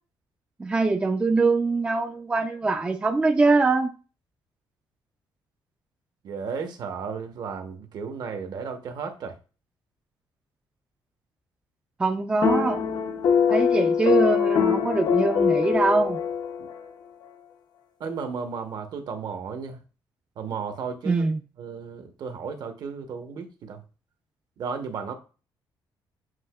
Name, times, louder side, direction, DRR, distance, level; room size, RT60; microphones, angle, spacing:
voice 1, 0.6-3.9 12.0-12.8 13.5-16.2 21.1-21.4, right 3 dB, 15° right, 0.3 m, -23 dB
voice 2, 6.2-9.4 16.6-16.7 18.0-19.8 20.4-21.3 21.6-23.8 24.6-25.1, right 5 dB, 55° right, 0.8 m, -34 dB
sound 1, 12.4-16.9, left 7 dB, 60° left, 0.5 m, -23 dB
7.5 x 2.7 x 2.2 m
cardioid pair, 155°, 8 cm